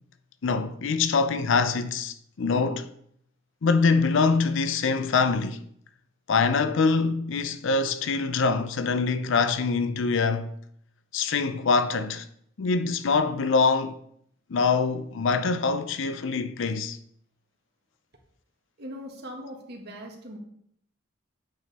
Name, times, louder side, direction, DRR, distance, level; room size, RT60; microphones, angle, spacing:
voice 1, 0.4-2.9 3.6-5.7 6.3-10.5 11.1-12.3 12.6-14.0 14.5-17.0, left 4 dB, 65° left, 0.5 m, -24 dB
voice 2, 18.8-20.4, equal, 55° right, 1.6 m, -40 dB
8.7 x 5.4 x 4.2 m
head